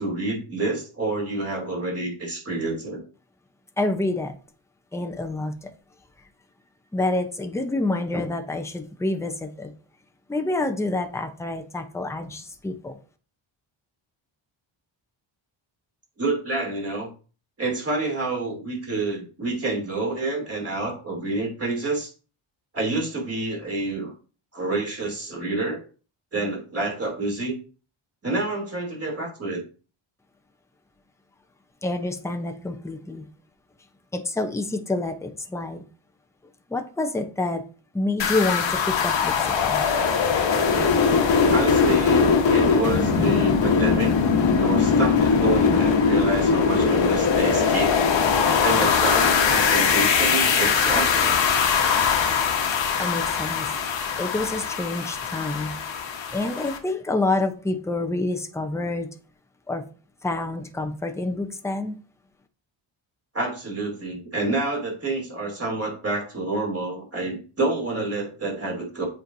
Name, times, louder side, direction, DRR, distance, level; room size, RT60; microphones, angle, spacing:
voice 1, 0.0-3.0 16.2-17.1 17.6-22.1 22.7-24.1 24.5-25.8 26.3-27.6 28.2-29.6 41.5-44.1 44.6-48.0 48.6-51.4 63.3-69.1, right 2 dB, 30° right, -1 dB, 3.0 m, -28 dB
voice 2, 3.8-4.3 4.9-5.7 6.9-9.7 10.3-13.0 31.8-33.3 34.1-35.8 36.7-37.6 37.9-39.8 53.0-53.7 54.2-55.7 56.3-59.1 59.7-59.8 60.2-62.0, left 2 dB, 5° left, 5 dB, 0.7 m, -27 dB
sound 1, 38.2-56.8, left 5 dB, 65° left, 1.3 m, -21 dB
8.1 x 4.5 x 2.7 m, 0.37 s
cardioid pair, 110°, 49 cm